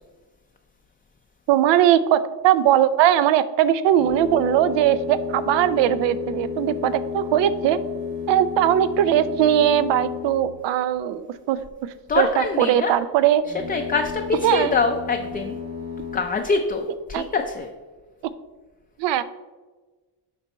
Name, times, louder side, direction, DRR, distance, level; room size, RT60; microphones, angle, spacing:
voice 1, 1.5-7.8 8.3-11.6 12.2-13.4 14.4-14.7 17.1-17.2 19.0-19.2, right 11 dB, 80° right, 14 dB, 0.6 m, -20 dB
sound 1, 4.0-10.8 13.4-16.2, left 6 dB, 40° right, 1.3 m, -32 dB
voice 2, 12.1-12.9 13.5-15.5 16.1-17.7, left 4 dB, 20° left, 3 dB, 0.4 m, -24 dB
7.7 x 5.3 x 4.3 m, 1.3 s
cardioid pair, 140°, 42 cm